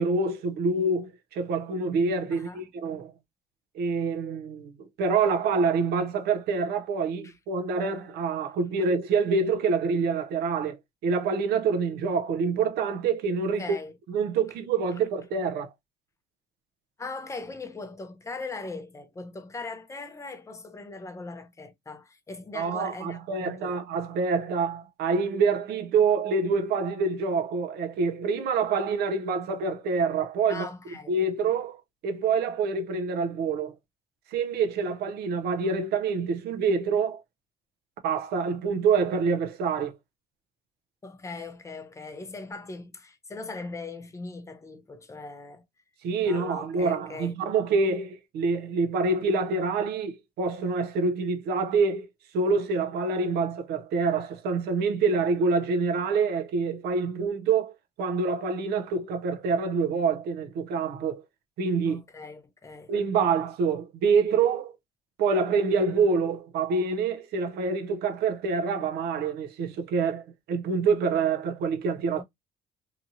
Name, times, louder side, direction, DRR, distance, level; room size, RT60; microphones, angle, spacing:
voice 1, 0.0-3.1 3.7-13.8 14.1-15.7 22.5-30.7 31.1-31.8 32.0-33.7 34.3-37.2 38.0-40.0 46.0-52.1 52.3-57.7 58.0-61.2 61.6-62.0 62.9-64.8 65.2-72.2, right 4 dB, 70° right, 0.6 m, -26 dB
voice 2, 2.3-2.7 7.2-7.3 13.6-13.9 17.0-23.8 30.5-31.2 41.0-45.6 46.2-47.3 61.9-62.9 72.1-72.2, left 3 dB, 15° left, 0.6 m, -40 dB
2.8 x 2.6 x 2.5 m
cardioid pair, 110°, 17 cm